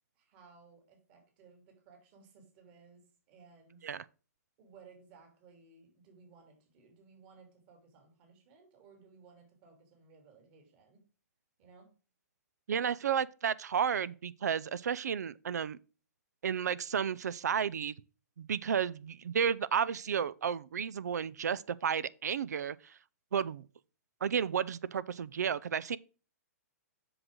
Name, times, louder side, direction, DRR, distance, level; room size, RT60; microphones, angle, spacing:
voice 1, 0.1-3.9 4.6-11.0 11.6-11.9, right 5 dB, 40° right, 3.0 m, -59 dB
voice 2, 12.7-15.8 16.4-17.9 18.4-22.8 23.3-23.6 24.2-26.0, right 7 dB, 85° right, 0.5 m, -32 dB
7.7 x 6.3 x 3.7 m
hypercardioid pair, 145°, 9 cm